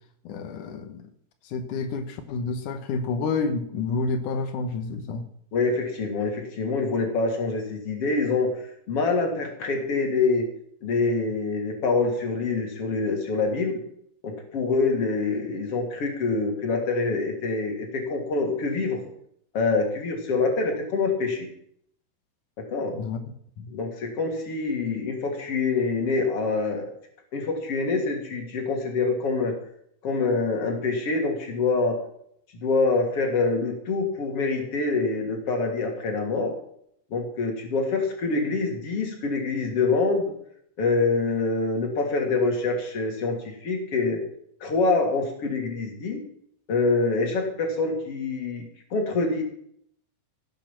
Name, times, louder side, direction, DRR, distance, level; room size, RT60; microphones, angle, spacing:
voice 1, 0.3-1.1 1.4-5.2 22.9-23.2 23.6-23.7, left 4 dB, 90° left, 7 dB, 1.7 m, -29 dB
voice 2, 5.5-8.6 8.9-10.5 10.8-13.8 14.2-19.0 19.5-21.5 22.6-22.9 23.7-26.9 27.3-29.5 30.0-32.0 32.6-36.5 37.1-40.3 40.8-44.2 44.6-46.2 46.7-49.4, left 3 dB, 35° left, 2 dB, 3.1 m, -25 dB
16.0 x 8.5 x 7.5 m, 0.69 s
omnidirectional pair, 5.4 m